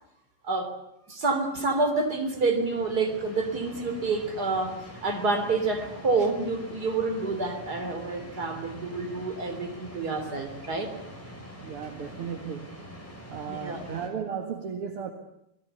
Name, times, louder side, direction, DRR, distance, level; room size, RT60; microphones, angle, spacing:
voice 1, 0.4-0.8 1.1-10.9 13.4-13.8, right 3 dB, 25° right, 6 dB, 3.7 m, -28 dB
sound 1, 1.5-14.1, equal, 5° left, 5.2 m, -45 dB
voice 2, 11.6-12.8 13.3-15.1, right 7 dB, 45° right, 5 dB, 2.1 m, -35 dB
27.5 x 20.5 x 8.2 m, 0.79 s
omnidirectional pair, 4.3 m